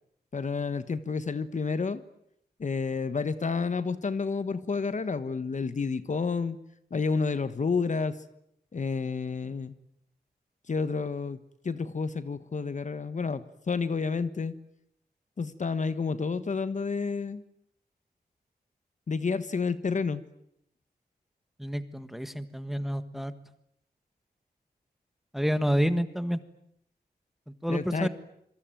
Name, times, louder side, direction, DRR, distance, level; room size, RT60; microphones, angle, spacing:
voice 1, 0.3-2.0 2.6-6.6 6.9-8.2 8.7-9.7 10.7-11.4 11.6-14.5 15.4-17.4 19.1-20.2 27.7-28.1, left 4 dB, 45° left, 13 dB, 1.3 m, -30 dB
voice 2, 21.6-23.3 25.3-26.4 27.6-28.1, equal, ahead, 11 dB, 1.6 m, -28 dB
27.0 x 23.0 x 9.2 m, 0.76 s
wide cardioid pair, 150°, 17 cm